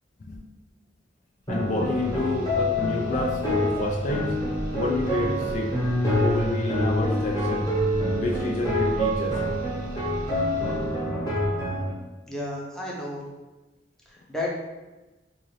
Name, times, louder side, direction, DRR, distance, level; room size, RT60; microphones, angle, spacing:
sound 1, 1.4-11.1, equal, 50° right, 0.6 m, -40 dB
voice 1, 1.5-4.3 4.7-5.7 6.2-7.7 8.1-9.4, left 2 dB, 40° left, -1 dB, 0.4 m, -29 dB
sound 2, 1.5-11.9, equal, 20° left, 1.0 m, -26 dB
voice 2, 12.3-13.2 14.1-14.5, left 1 dB, 5° left, -4 dB, 0.6 m, -32 dB
3.8 x 2.4 x 3.2 m, 1.1 s
head